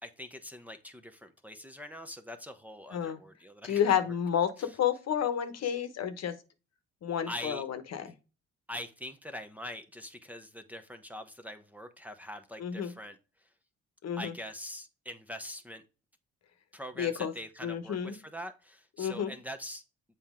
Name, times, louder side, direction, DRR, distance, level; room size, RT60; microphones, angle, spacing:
voice 1, 0.0-4.0 4.6-4.7 7.3-7.6 8.7-13.5 14.2-15.8 16.7-19.8, left 1 dB, 5° right, 6 dB, 0.8 m, -43 dB
voice 2, 3.6-6.3 7.0-8.1 12.6-12.9 14.0-14.3 17.0-17.3 17.6-18.1 19.0-19.3, left 9 dB, 60° left, 10 dB, 1.0 m, -30 dB
7.3 x 4.4 x 3.6 m, 0.32 s
cardioid pair, 90°, 30 cm